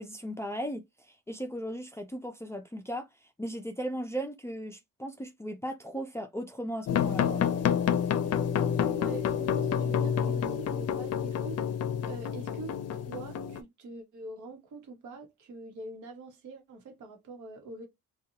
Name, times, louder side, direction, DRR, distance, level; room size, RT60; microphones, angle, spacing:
voice 1, 0.0-3.1 3.4-7.4, equal, 10° left, 0.5 m, -37 dB
sound 1, 6.9-13.6, left 8 dB, 55° left, 0.5 m, -28 dB
voice 2, 8.7-11.6 12.1-12.7 13.1-17.9, right 2 dB, 80° right, 1.1 m, -44 dB
2.6 x 2.3 x 2.8 m
cardioid pair, 90°, 30 cm